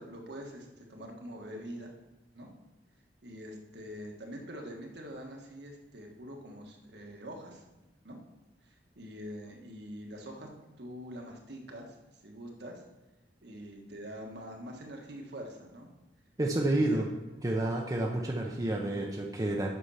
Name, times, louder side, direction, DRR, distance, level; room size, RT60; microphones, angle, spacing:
voice 1, 0.0-1.9 2.3-2.5 3.2-7.6 8.0-8.2 8.6-10.5 10.8-12.8 13.4-15.9 16.8-17.0, equal, 70° right, 1 dB, 1.5 m, -44 dB
voice 2, 16.4-17.1 17.4-19.7, right 1 dB, 20° right, -1 dB, 0.7 m, -29 dB
8.2 x 5.9 x 5.7 m, 1.0 s
head